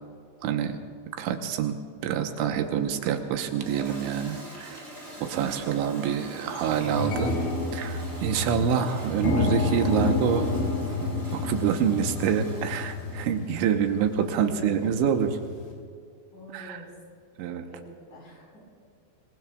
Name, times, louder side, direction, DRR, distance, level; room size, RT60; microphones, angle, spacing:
voice 1, 0.4-0.8 1.2-4.8 5.2-7.4 7.7-10.5 11.3-15.4 16.5-16.8 17.4-17.7, right 7 dB, 85° right, 5 dB, 3.3 m, -26 dB
Toilet flush, 2.4-13.4, right 1 dB, 5° right, 5.0 m, -44 dB
sound 1, 5.0-5.2 5.6-5.7 6.0-15.7, left 2 dB, 75° left, 5.4 m, -30 dB
voice 2, 5.3-5.7 14.3-15.1 16.3-16.9 17.5-18.6, left 1 dB, 45° left, -2 dB, 6.1 m, -46 dB
26.0 x 22.5 x 2.4 m, 2.2 s
omnidirectional pair, 5.2 m